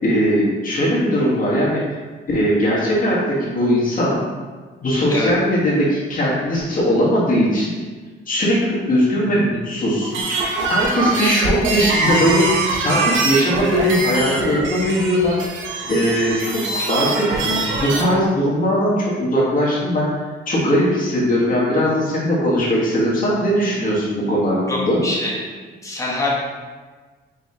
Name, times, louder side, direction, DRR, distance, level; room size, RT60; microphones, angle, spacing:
voice 1, 0.0-1.8 2.3-4.3 4.8-7.7 8.3-10.1 10.7-12.4 12.8-15.4 15.9-20.2 20.5-25.0, equal, 45° left, -6 dB, 1.2 m, -19 dB
sound 1, 10.0-18.0, right 3 dB, 75° right, 0.7 m, -23 dB
voice 2, 24.7-25.4 25.8-26.3, left 2 dB, 15° left, -5 dB, 1.1 m, -24 dB
4.9 x 3.0 x 2.7 m, 1.4 s
cardioid pair, 90°, 20 cm